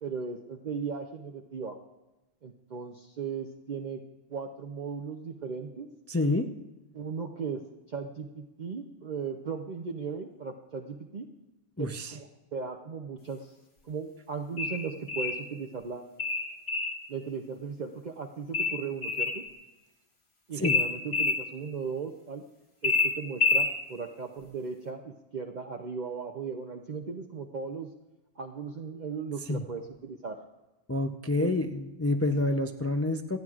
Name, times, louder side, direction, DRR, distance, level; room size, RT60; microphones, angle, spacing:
voice 1, 0.0-1.8 2.4-4.0 4.3-5.9 6.9-7.6 7.9-11.3 11.8-13.5 13.8-16.0 17.1-19.4 20.5-22.4 22.8-27.9 28.4-30.4 31.4-31.5, right 5 dB, 45° right, 2 dB, 0.8 m, -37 dB
voice 2, 6.1-6.5 11.8-12.1 20.5-20.8 29.5-29.6 30.9-33.4, left 2 dB, 20° left, 6 dB, 0.3 m, -28 dB
sound 1, 14.6-15.4 16.2-17.0 18.5-19.4 20.6-21.4 22.8-23.7, left 4 dB, 60° left, 2.4 m, -27 dB
27.5 x 9.3 x 2.4 m, 1.0 s
omnidirectional pair, 1.2 m